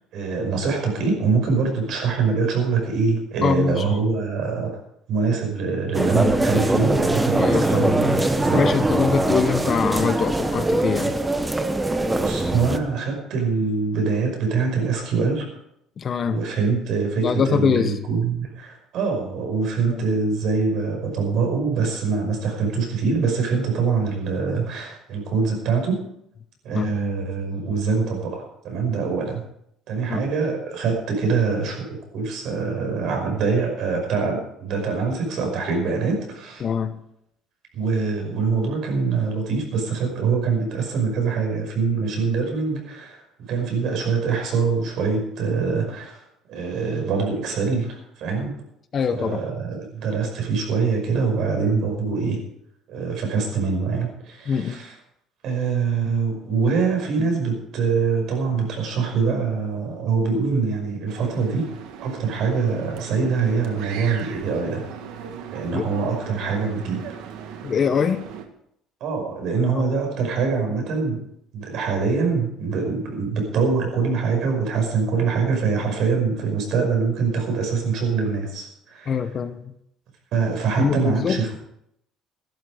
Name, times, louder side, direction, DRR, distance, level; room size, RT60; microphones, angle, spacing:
voice 1, 0.1-4.8 5.1-8.7 11.9-15.5 16.3-26.0 26.6-29.4 29.9-36.6 37.7-48.6 49.2-52.4 52.9-54.9 55.4-61.7 62.0-64.9 65.5-67.0 67.4-67.6 69.0-71.3 71.5-79.2 80.3-81.5, right 5 dB, 60° right, 5.5 m, -24 dB
voice 2, 3.4-3.8 7.4-8.2 8.5-11.1 16.0-16.4 17.2-18.0 19.9-20.0 26.7-26.9 30.1-30.2 36.6-37.0 48.9-49.4 54.5-54.8 65.7-65.9 67.6-68.2 69.7-69.8 79.1-79.7 80.8-81.4, left 6 dB, 35° left, 0.8 m, -23 dB
sound 1, 5.9-12.8, right 2 dB, 10° right, 0.9 m, -22 dB
sound 2, 61.1-68.5, right 8 dB, 80° right, 1.6 m, -38 dB
14.0 x 12.0 x 5.0 m
cardioid pair, 155°, 0 cm